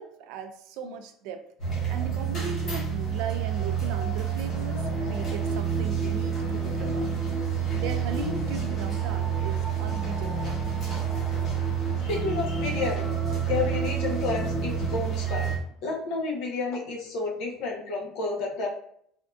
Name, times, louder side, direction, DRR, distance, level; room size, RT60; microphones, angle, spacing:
voice 1, 0.0-7.1 7.5-10.5, right 6 dB, 65° right, 7 dB, 0.3 m, -38 dB
sound 1, 1.6-15.6, right 7 dB, 35° left, 1.0 m, -29 dB
sound 2, 4.8-15.0, equal, 10° right, 0.7 m, -36 dB
voice 2, 12.0-13.1 13.5-15.5 15.8-18.7, left 3 dB, 60° left, 0 dB, 0.7 m, -30 dB
3.4 x 2.5 x 2.2 m, 0.67 s
cardioid pair, 175°, 0 cm